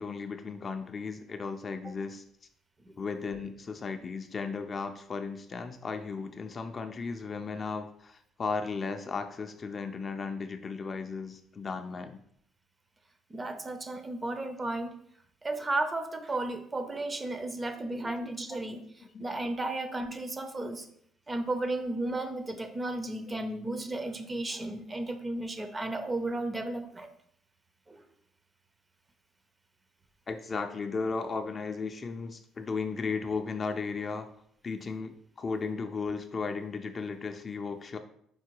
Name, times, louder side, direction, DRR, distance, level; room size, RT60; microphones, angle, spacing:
voice 1, 0.0-2.2 3.0-12.2 18.1-18.2 19.1-19.2 30.3-34.3 34.6-38.0, left 4 dB, 35° left, 7 dB, 0.3 m, -35 dB
voice 2, 13.3-14.9 15.4-18.8 19.2-20.9 21.3-27.1 27.9-28.0, right 2 dB, 20° right, 8 dB, 0.5 m, -34 dB
4.5 x 2.2 x 4.5 m, 0.68 s
cardioid pair, 90°, 0 cm